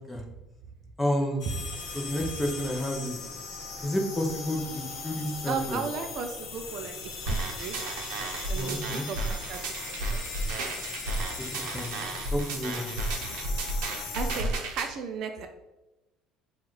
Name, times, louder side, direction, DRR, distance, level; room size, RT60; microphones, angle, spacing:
voice 1, 1.0-1.4 1.9-3.2 3.8-5.8 8.6-9.1 11.5-12.0 12.3-12.9, left 1 dB, 10° left, 1 dB, 0.6 m, -30 dB
sound 1, 1.4-14.4, left 4 dB, 55° left, 0.7 m, -39 dB
voice 2, 5.5-6.9 7.2-7.8 8.5-9.6 10.1-10.2 13.2-13.3 14.1-15.5, right 5 dB, 45° right, 6 dB, 0.3 m, -35 dB
sound 2, 7.3-14.9, right 2 dB, 85° right, 0.7 m, -33 dB
6.0 x 2.4 x 3.1 m, 1.0 s
cardioid pair, 165°, 0 cm